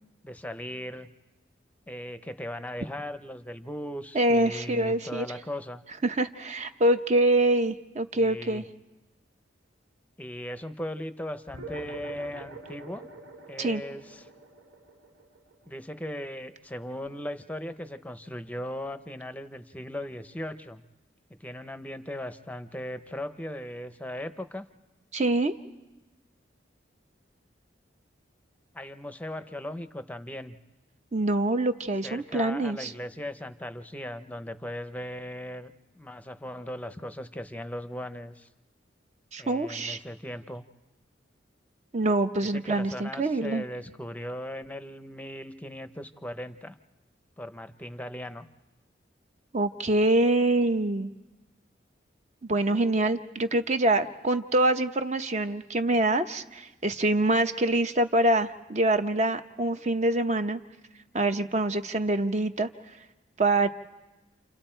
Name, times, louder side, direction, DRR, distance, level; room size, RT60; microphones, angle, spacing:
voice 1, 0.2-1.1 1.9-5.8 8.1-8.7 10.2-13.1 13.5-14.3 15.7-20.8 21.4-24.6 28.7-30.6 32.0-38.5 39.4-40.6 42.5-46.8 47.4-48.5, left 1 dB, 10° left, 10 dB, 0.7 m, -38 dB
voice 2, 4.1-5.3 6.0-8.6 13.6-13.8 25.1-25.5 31.1-32.9 39.3-40.0 41.9-43.6 49.5-51.1 52.5-60.6 61.1-62.7 63.4-63.7, right 2 dB, 40° right, 8 dB, 0.8 m, -25 dB
sound 1, 11.5-16.3, right 2 dB, 90° right, 2.8 m, -45 dB
29.0 x 28.5 x 4.5 m, 1.1 s
head